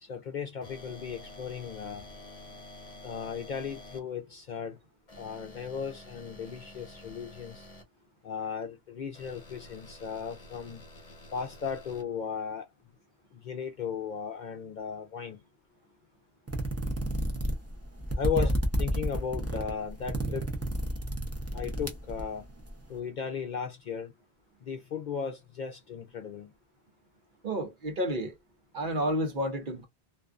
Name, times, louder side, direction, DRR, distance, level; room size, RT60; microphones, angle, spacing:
voice 1, 0.0-2.0 3.0-4.8 5.2-7.7 8.2-10.8 11.3-12.7 13.3-15.4 18.1-18.5 18.8-20.5 21.5-22.4 22.9-24.1 24.6-26.5, left 7 dB, 55° left, 0.6 m, -36 dB
sound 1, 0.6-4.0 5.1-7.8 9.1-12.0, left 1 dB, 35° left, 1.1 m, -49 dB
sound 2, 16.5-22.7, right 1 dB, 15° right, 0.6 m, -31 dB
voice 2, 27.4-28.3 28.7-29.9, equal, 55° right, 0.9 m, -31 dB
2.6 x 2.3 x 2.4 m
omnidirectional pair, 1.1 m